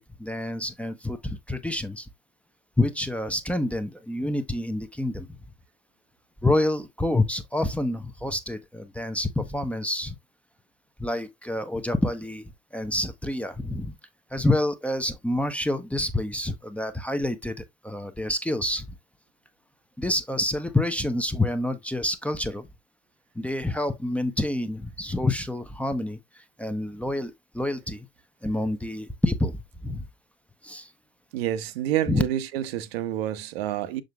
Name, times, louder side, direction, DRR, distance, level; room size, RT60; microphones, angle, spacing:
voice 1, 0.0-2.1 2.8-5.3 6.4-10.1 11.0-12.4 12.7-13.9 14.3-18.9 20.0-22.7 23.4-26.2 26.6-28.1 28.4-30.0 30.6-30.9 32.1-32.2, left 1 dB, 5° left, 0.8 m, -27 dB
voice 2, 31.3-34.0, right 12 dB, 65° right, 1.0 m, -28 dB
6.6 x 6.3 x 2.4 m
figure-of-eight pair, 70°, 33 cm